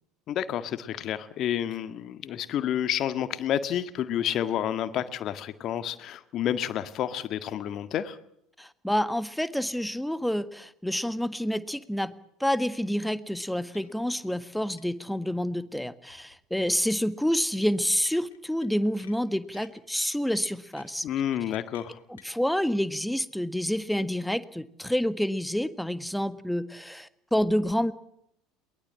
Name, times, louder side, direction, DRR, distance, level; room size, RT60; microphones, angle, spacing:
voice 1, 0.3-8.2 21.0-22.0, left 10 dB, 45° left, 12 dB, 1.8 m, -30 dB
voice 2, 8.6-12.1 12.4-21.1 22.1-27.9, equal, ahead, 14 dB, 1.6 m, -28 dB
sound 1, 13.7-13.9 14.2-14.3 14.8-14.9 16.1-16.4 18.1-18.7 19.0-19.9 20.4-22.4, left 9 dB, 75° left, 3.2 m, -53 dB
22.5 x 20.5 x 7.6 m, 0.73 s
figure-of-eight pair, 70°, 0 cm